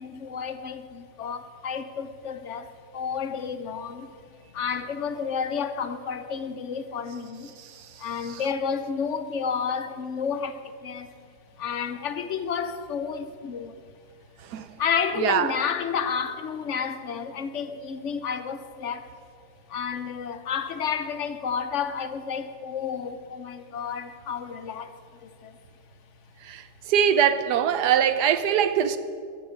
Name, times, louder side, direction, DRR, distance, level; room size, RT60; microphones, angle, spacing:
voice 1, 0.0-2.7 2.9-4.1 4.5-7.5 8.0-10.5 10.8-11.1 11.6-13.7 14.8-19.0 19.7-24.9, left 6 dB, 55° left, 1.0 m, -30 dB
voice 2, 15.2-15.5 26.4-29.0, right 9 dB, 80° right, 1.3 m, -23 dB
15.0 x 13.5 x 5.2 m
omnidirectional pair, 1.7 m